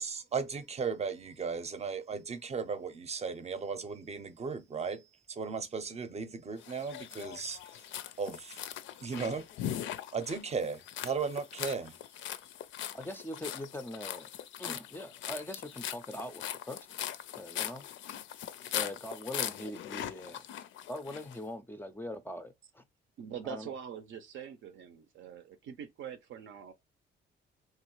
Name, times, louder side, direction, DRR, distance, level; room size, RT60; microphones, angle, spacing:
voice 1, 0.0-5.0 5.3-7.6 8.2-8.6 9.0-9.5 10.1-11.9, right 5 dB, 35° right, 0.6 m, -36 dB
sound 1, 6.6-21.4, left 11 dB, 75° left, 0.4 m, -40 dB
voice 2, 12.9-14.3 14.6-16.8 17.4-17.9 18.7-20.4 20.9-22.8 23.4-23.7, left 1 dB, 10° left, 0.4 m, -42 dB
voice 3, 23.2-26.7, right 8 dB, 75° right, 0.6 m, -44 dB
3.0 x 2.4 x 2.9 m
cardioid pair, 90°, 20 cm